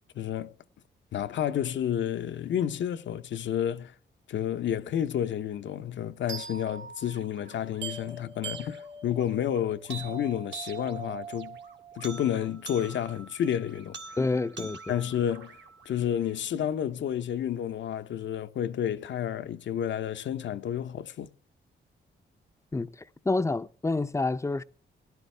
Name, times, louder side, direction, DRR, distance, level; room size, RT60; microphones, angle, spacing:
voice 1, 0.1-0.5 1.1-3.9 4.3-11.6 12.0-14.0 14.6-15.6 15.9-21.3, left 10 dB, 75° left, 0.8 m, -30 dB
sound 1, 6.3-16.3, right 5 dB, 70° right, 1.9 m, -43 dB
voice 2, 14.2-14.9 22.7-22.9 23.2-24.6, left 3 dB, 15° left, 0.5 m, -28 dB
17.0 x 11.0 x 3.3 m
cardioid pair, 105°, 19 cm